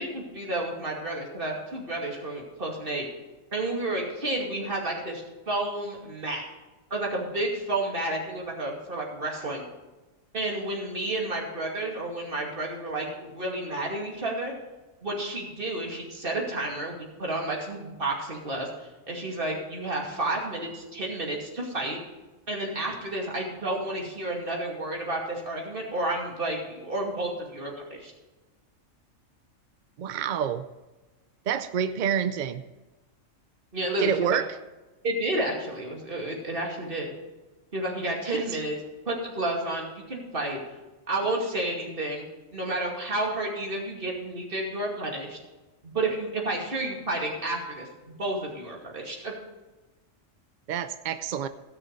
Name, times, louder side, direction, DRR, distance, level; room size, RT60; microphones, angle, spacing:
voice 1, 0.0-3.1 3.5-6.4 6.9-9.6 10.3-14.5 15.0-22.0 22.5-28.1 33.7-34.3 35.0-37.1 37.7-38.8 39.1-40.6 41.1-42.2 42.5-45.4 45.8-49.3, right 2 dB, 45° right, -1 dB, 2.6 m, -31 dB
voice 2, 30.0-30.6 31.5-32.6 34.0-34.5 38.3-38.6 50.7-51.5, right 8 dB, 65° right, 11 dB, 0.4 m, -28 dB
16.5 x 6.4 x 5.2 m, 1.1 s
omnidirectional pair, 1.4 m